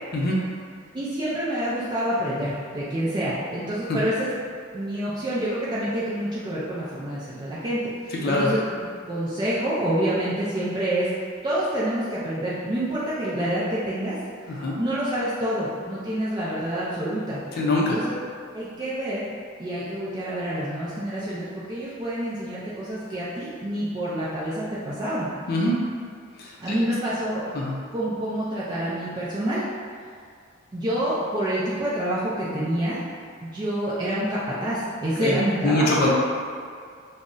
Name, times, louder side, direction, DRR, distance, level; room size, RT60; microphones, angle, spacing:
voice 1, 0.9-4.3 4.7-8.6 9.1-11.1 11.4-14.2 14.8-18.1 18.5-19.3 19.6-25.3 26.6-27.4 27.9-29.6 30.7-33.0 33.4-36.0, right 1 dB, 20° right, -9 dB, 0.4 m, -27 dB
voice 2, 8.2-8.5 14.5-14.8 17.6-18.0 25.5-25.8 26.4-26.8 27.5-27.7 35.2-35.3 35.6-36.1, left 1 dB, 50° left, -4 dB, 0.5 m, -23 dB
2.5 x 2.0 x 3.6 m, 2.2 s
head